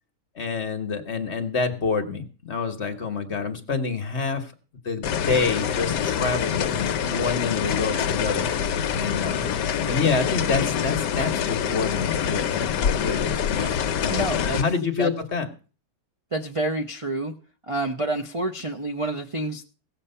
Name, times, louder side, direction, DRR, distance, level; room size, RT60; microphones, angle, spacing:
voice 1, 0.3-4.5 4.8-8.5 8.9-9.4 9.9-13.7 14.0-14.2 14.4-15.5, left 4 dB, 45° left, 6 dB, 1.4 m, -27 dB
sound 1, 5.0-14.6, left 8 dB, 75° left, 1.3 m, -25 dB
voice 2, 14.1-14.7 15.0-15.1 16.3-17.3 17.6-19.6, right 2 dB, 35° right, 1 dB, 0.5 m, -28 dB
16.5 x 7.4 x 5.6 m, 0.38 s
omnidirectional pair, 1.8 m